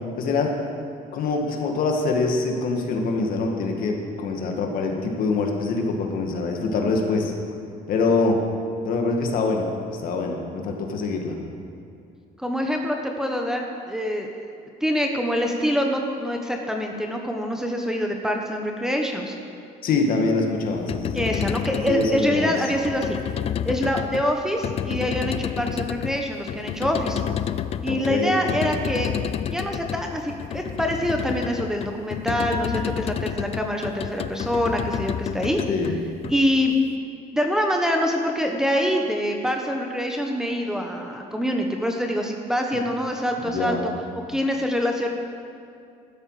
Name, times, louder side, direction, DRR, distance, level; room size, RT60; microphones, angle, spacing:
voice 1, 0.2-0.5 1.1-7.3 7.9-8.4 8.8-9.7 10.0-11.4 19.8-21.3 21.7-22.5 27.9-28.6 35.7-36.0 43.4-43.9, left 3 dB, 60° left, 2 dB, 2.1 m, -24 dB
voice 2, 12.4-14.4 14.8-19.4 21.1-23.2 23.6-27.2 27.8-29.1 29.5-35.6 36.3-36.7 37.3-43.9 44.3-45.1, equal, 5° right, 2 dB, 1.1 m, -25 dB
sound 1, 20.7-36.8, left 9 dB, 40° left, 0.4 m, -30 dB
15.0 x 12.5 x 5.0 m, 2.4 s
cardioid pair, 140°, 17 cm